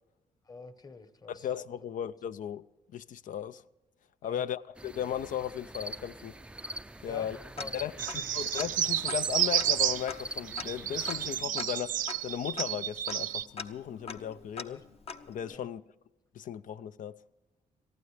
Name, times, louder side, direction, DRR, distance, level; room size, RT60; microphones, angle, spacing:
voice 1, 0.4-1.5 4.2-4.4 7.0-8.4 14.6-14.9 15.5-15.7, left 3 dB, 25° left, 1.1 m, -48 dB
voice 2, 1.3-2.6 2.9-3.6 4.2-6.3 7.0-7.4 7.7-14.8 15.3-15.8 16.3-17.2, left 9 dB, 65° left, 0.5 m, -36 dB
sound 1, 4.8-11.4, right 1 dB, 10° right, 0.4 m, -43 dB
Tick-tock, 7.6-8.3 8.6-8.7 9.0-15.6, left 5 dB, 45° left, 0.9 m, -43 dB
sound 2, 8.0-10.1 10.5-13.5, right 10 dB, 70° right, 0.5 m, -31 dB
22.0 x 14.5 x 3.3 m
cardioid pair, 80°, 14 cm